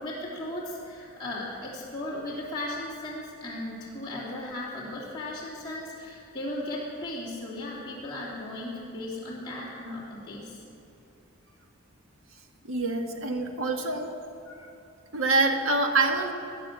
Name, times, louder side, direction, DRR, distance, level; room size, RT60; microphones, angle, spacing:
voice 1, 0.0-10.6, left 1 dB, 20° left, -8 dB, 3.3 m, -36 dB
voice 2, 12.6-14.1 14.5-14.7 15.1-16.3, right 3 dB, 75° right, 4 dB, 1.7 m, -26 dB
17.5 x 10.0 x 7.6 m, 3.0 s
head